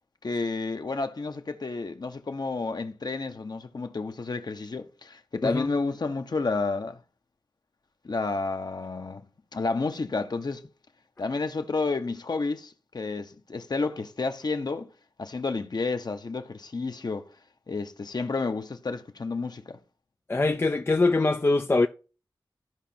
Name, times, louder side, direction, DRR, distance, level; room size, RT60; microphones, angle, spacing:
voice 1, 0.2-7.0 8.0-9.2 9.5-10.6 11.2-14.9 15.2-17.3 17.7-19.8, left 3 dB, 50° left, 0.9 m, -30 dB
voice 2, 20.3-21.9, left 3 dB, 25° left, 0.4 m, -23 dB
13.5 x 5.0 x 2.8 m
cardioid pair, 60°, 9 cm